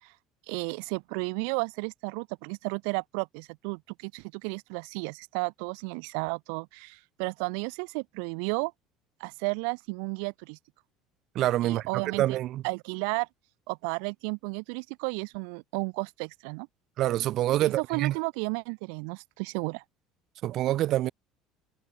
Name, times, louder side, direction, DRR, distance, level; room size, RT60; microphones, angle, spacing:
voice 1, 0.5-8.7 9.2-10.6 11.6-12.4 12.6-13.3 13.7-16.7 17.6-19.8, right 40 dB or more, 85° right, 7.3 m, -33 dB
voice 2, 11.4-11.9 12.1-12.6 17.0-18.2 20.4-21.1, right 14 dB, 50° right, 5.2 m, -26 dB
cardioid pair, 150°, 0 cm